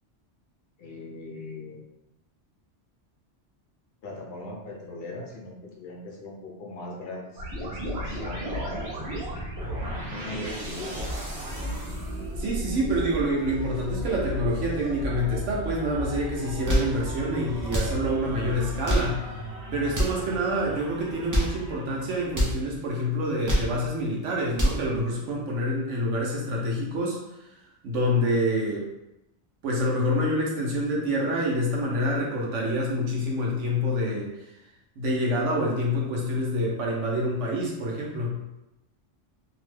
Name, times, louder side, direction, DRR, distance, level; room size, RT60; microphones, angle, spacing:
voice 1, 0.8-1.8 4.0-8.9 9.3-11.0, left 2 dB, 60° left, -1 dB, 0.9 m, -40 dB
sound 1, 7.4-22.3, equal, 65° right, 1.1 m, -35 dB
sound 2, 11.0-19.0, right 1 dB, 25° left, 0.7 m, -39 dB
voice 2, 12.4-19.4 19.7-27.2 27.8-28.9 29.6-34.5 35.0-38.4, equal, 90° right, -2 dB, 1.0 m, -27 dB
sound 3, 16.5-17.0 17.6-18.0 18.7-19.2 19.9-20.2 21.1-21.6 22.3-22.6 23.2-23.8 24.3-24.9, equal, 30° right, 0.3 m, -26 dB
2.8 x 2.1 x 3.2 m, 0.90 s
omnidirectional pair, 1.2 m